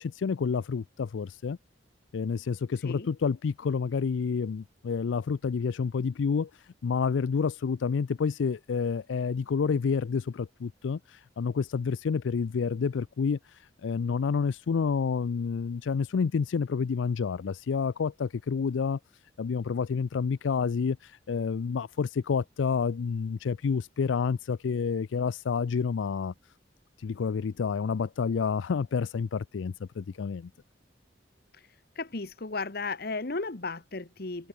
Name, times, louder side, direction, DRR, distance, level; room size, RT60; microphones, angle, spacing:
voice 1, 0.0-1.6 2.1-19.0 19.4-26.3 27.0-30.5, left 5 dB, 85° left, 0.4 m, -29 dB
voice 2, 32.0-34.5, left 3 dB, 55° left, 1.2 m, -34 dB
head